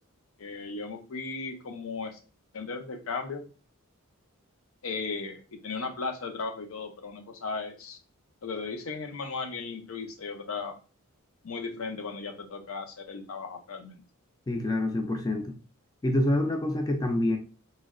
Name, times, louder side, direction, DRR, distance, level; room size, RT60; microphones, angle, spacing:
voice 1, 0.4-2.2 2.5-3.4 4.8-8.0 8.4-10.7 11.4-14.0, left 4 dB, 70° left, 5 dB, 0.5 m, -36 dB
voice 2, 14.5-15.6 16.0-17.4, left 1 dB, 20° left, 3 dB, 0.3 m, -26 dB
3.1 x 2.7 x 2.4 m, 0.37 s
head